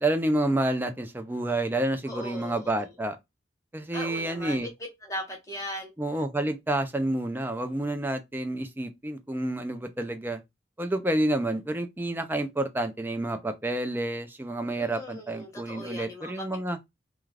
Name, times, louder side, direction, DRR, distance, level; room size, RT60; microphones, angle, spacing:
voice 1, 0.0-3.2 3.7-4.7 6.0-10.4 10.8-16.8, right 1 dB, 10° right, 0.3 m, -29 dB
voice 2, 2.1-2.9 3.9-4.7 5.0-5.9 14.8-16.4, left 1 dB, 15° left, 0.9 m, -38 dB
2.3 x 2.3 x 3.2 m
head